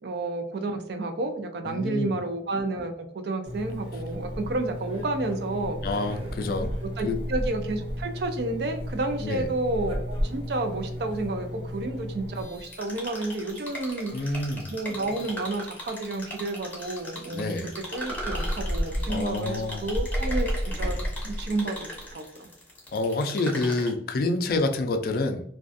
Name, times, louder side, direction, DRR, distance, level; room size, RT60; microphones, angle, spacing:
voice 1, 0.0-5.8 6.6-21.0 21.2-22.5, right 2 dB, 60° right, 6 dB, 0.4 m, -31 dB
voice 2, 1.7-2.2 5.8-6.7 7.0-7.2 9.2-9.5 14.1-14.7 17.3-17.7 19.1-19.8 22.9-25.4, left 2 dB, 50° left, 6 dB, 0.3 m, -28 dB
Engine, 3.4-12.4, equal, 80° right, 1.1 m, -37 dB
sound 1, 3.5-13.5 14.2-15.4 16.8-17.1 17.6-17.7 18.0-22.1, equal, 30° right, 0.7 m, -34 dB
sound 2, 12.6-23.9, equal, 10° left, 0.6 m, -39 dB
2.4 x 2.2 x 2.5 m, 0.68 s
head